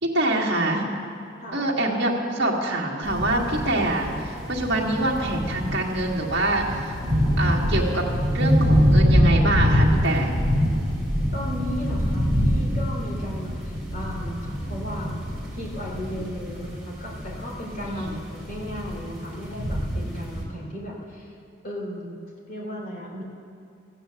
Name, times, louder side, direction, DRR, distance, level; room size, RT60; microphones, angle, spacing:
voice 1, 0.0-0.9 1.5-7.0 7.4-8.0 8.3-10.3 16.1-16.3 17.9-18.2, right 1 dB, 55° right, -2 dB, 1.7 m, -25 dB
sound 1, 3.0-20.4, equal, ahead, 2.7 m, -25 dB
voice 2, 11.3-15.2 15.5-21.4 21.6-22.2 22.5-23.2, equal, 45° left, -3 dB, 2.8 m, -35 dB
14.5 x 9.2 x 6.8 m, 2.4 s
head